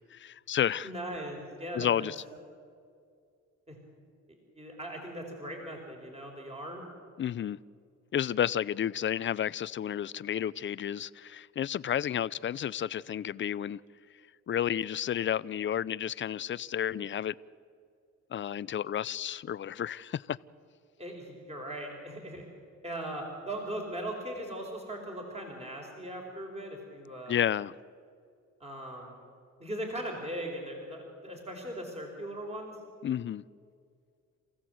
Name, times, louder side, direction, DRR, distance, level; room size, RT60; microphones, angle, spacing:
voice 1, 0.1-0.9 1.7-2.2 7.2-7.6 8.1-13.8 14.5-17.3 18.3-20.4 27.3-27.7 33.0-33.4, left 10 dB, 40° left, 0.5 m, -31 dB
voice 2, 0.8-1.9 3.7-3.8 4.5-6.8 21.0-22.4 22.8-27.4 28.6-29.2 29.6-32.7, right 1 dB, 20° right, 4.5 m, -39 dB
28.0 x 16.0 x 7.9 m
cardioid pair, 90°, 30 cm